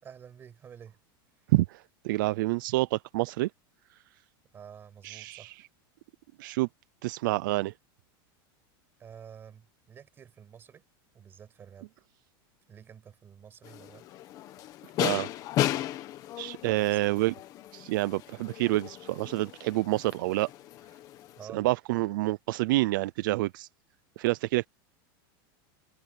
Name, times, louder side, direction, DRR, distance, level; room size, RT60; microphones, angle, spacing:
voice 1, 0.0-1.0 4.5-5.6 9.0-10.8 11.1-11.9 12.7-14.0 16.6-17.3 21.4-21.7, right 8 dB, 20° right, 6.0 m, -49 dB
voice 2, 1.5-3.5 5.0-5.5 6.4-6.7 7.0-7.7 15.0-15.3 16.4-17.3 17.7-20.5 21.5-23.7 24.2-24.7, right 19 dB, 60° right, 0.5 m, -28 dB
sound 1, 13.6-21.4, left 13 dB, 30° left, 1.6 m, -35 dB
supercardioid pair, 175°, 12 cm